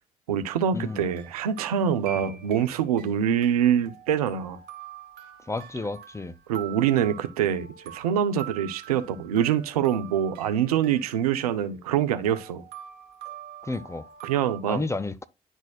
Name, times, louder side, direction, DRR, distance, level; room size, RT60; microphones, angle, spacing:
voice 1, 0.3-4.6 6.5-12.6 14.2-14.8, right 9 dB, 80° right, 0.6 m, -25 dB
sound 1, 0.9-3.1 3.4-14.6, right 8 dB, 60° right, 2.1 m, -45 dB
voice 2, 5.5-6.3 13.7-14.1 14.7-15.3, left 3 dB, 15° left, 0.7 m, -31 dB
10.5 x 4.1 x 2.3 m
figure-of-eight pair, 45°, 19 cm